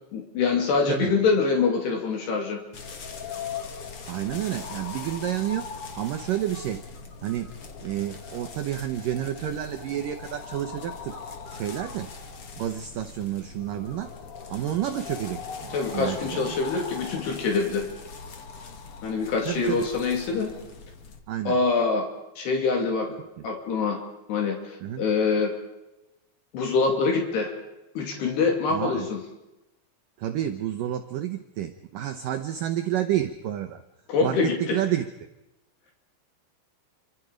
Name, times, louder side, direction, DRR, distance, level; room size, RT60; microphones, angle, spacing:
voice 1, 0.1-2.6 15.7-17.9 19.0-20.5 21.5-22.1 22.4-23.1 23.4-24.0 24.3-25.5 26.5-27.5 28.0-29.2 34.1-34.8, left 4 dB, 65° left, 2 dB, 4.5 m, -25 dB
sound 1, 2.7-21.2, left 5 dB, 45° left, 2.0 m, -40 dB
voice 2, 4.1-6.8 7.2-7.5 7.8-11.2 11.5-12.1 12.6-14.1 14.5-16.7 19.5-19.9 21.3-21.6 23.2-23.5 24.8-25.1 28.7-29.1 30.2-33.8 34.2-35.1, right 12 dB, 85° right, 9 dB, 1.9 m, -30 dB
29.0 x 25.5 x 5.2 m, 0.96 s
omnidirectional pair, 5.3 m